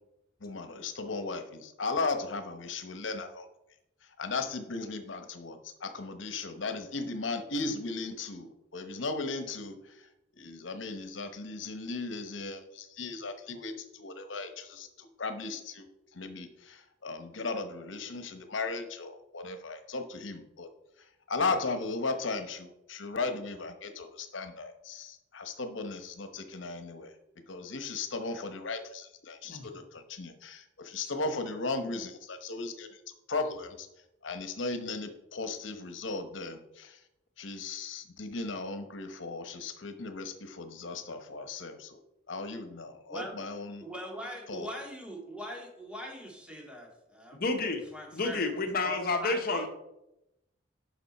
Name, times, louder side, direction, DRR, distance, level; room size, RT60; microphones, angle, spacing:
voice 1, 0.4-3.5 4.2-10.1 10.4-15.9 16.1-20.7 21.3-27.1 27.5-33.0 33.3-33.9 34.2-37.0 37.4-42.0 42.3-43.9 44.5-44.7, left 3 dB, 85° left, 8 dB, 1.0 m, -36 dB
voice 2, 43.8-47.4 47.9-48.5 48.8-49.7, equal, 5° right, 0 dB, 2.0 m, -41 dB
voice 3, 47.4-47.9 48.1-49.7, left 3 dB, 55° left, 5 dB, 1.1 m, -30 dB
10.5 x 6.0 x 4.2 m, 0.89 s
head